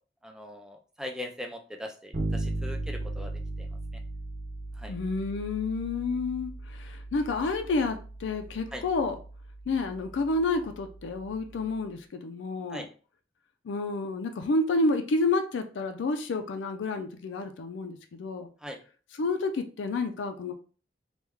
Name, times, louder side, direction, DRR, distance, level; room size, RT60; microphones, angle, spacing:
voice 1, 0.2-3.3 3.6-3.7 4.8-4.9 8.7-8.8 12.7-12.9 18.6-18.8, left 1 dB, 5° right, 4 dB, 0.4 m, -40 dB
Bass guitar, 2.1-11.8, right 2 dB, 45° right, 0.9 m, -38 dB
voice 2, 4.9-9.2 9.7-12.9 13.6-18.5 19.1-20.5, left 3 dB, 85° left, 6 dB, 0.4 m, -29 dB
3.1 x 2.3 x 3.4 m, 0.38 s
head